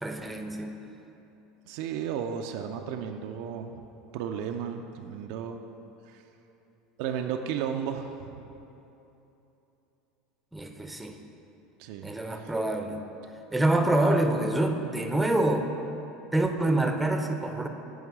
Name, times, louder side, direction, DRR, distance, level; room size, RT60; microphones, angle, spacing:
voice 1, 0.0-0.7 10.5-11.2 12.0-13.0 13.5-15.7 16.3-17.7, right 1 dB, 5° right, 5 dB, 0.6 m, -26 dB
voice 2, 1.7-3.8 4.1-5.6 6.1-6.2 7.0-8.5 11.8-12.5, right 8 dB, 60° right, 5 dB, 0.4 m, -34 dB
8.7 x 3.2 x 6.1 m, 3.0 s
figure-of-eight pair, 75°, 0 cm